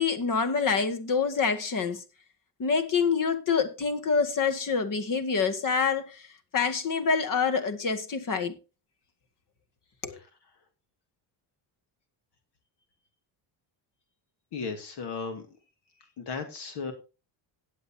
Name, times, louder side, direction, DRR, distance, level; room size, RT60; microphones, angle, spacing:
voice 1, 0.0-2.0 2.6-6.3 6.5-8.5 10.0-10.2, left 5 dB, 45° left, 2.0 m, -26 dB
voice 2, 14.5-15.4 16.0-16.9, left 5 dB, 65° left, 2.3 m, -36 dB
17.5 x 8.4 x 2.8 m
cardioid pair, 115°, 43 cm